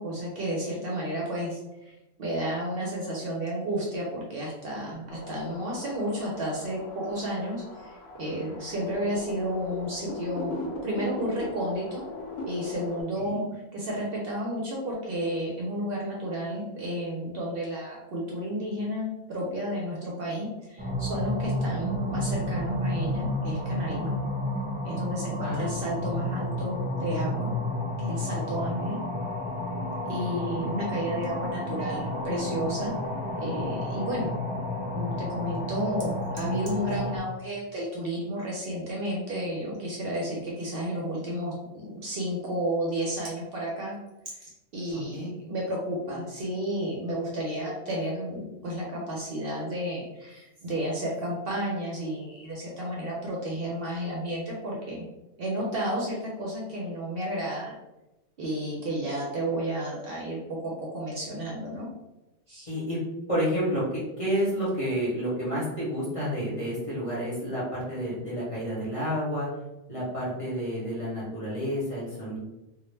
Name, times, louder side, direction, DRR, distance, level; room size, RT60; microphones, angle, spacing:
voice 1, 0.0-12.0 12.5-24.2 24.8-27.5 28.0-29.0 30.1-32.9 33.4-34.3 34.9-44.0 44.3-55.1 55.4-57.7 58.4-61.9 62.5-62.7, equal, 60° right, -3 dB, 0.7 m, -32 dB
sound 1, 5.1-13.0, left 2 dB, 65° left, 0.7 m, -39 dB
sound 2, 20.8-37.2, left 1 dB, 10° right, 0.8 m, -31 dB
voice 2, 44.9-45.3 62.7-63.0 63.3-69.5 69.9-72.4, equal, 35° left, -7 dB, 0.7 m, -30 dB
2.3 x 2.0 x 3.1 m, 0.98 s
omnidirectional pair, 1.2 m